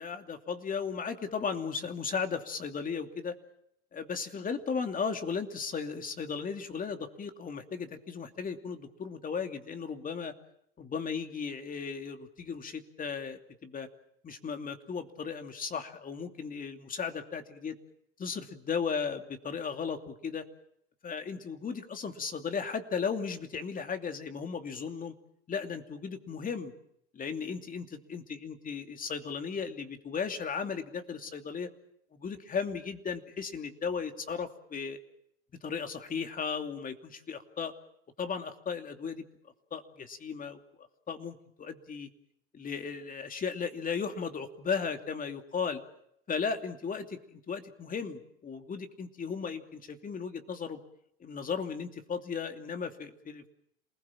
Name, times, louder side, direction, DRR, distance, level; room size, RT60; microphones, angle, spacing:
voice 1, 0.0-3.4 4.0-10.3 10.8-13.9 14.2-17.7 18.2-20.5 21.0-25.1 25.5-26.7 27.1-31.7 32.1-35.0 35.6-37.7 38.2-39.2 39.7-40.6 41.1-42.1 42.5-45.8 46.3-50.8 51.2-53.5, left 6 dB, 30° left, 7 dB, 2.7 m, -36 dB
28.0 x 20.0 x 7.4 m, 0.74 s
hypercardioid pair, 85°, 29 cm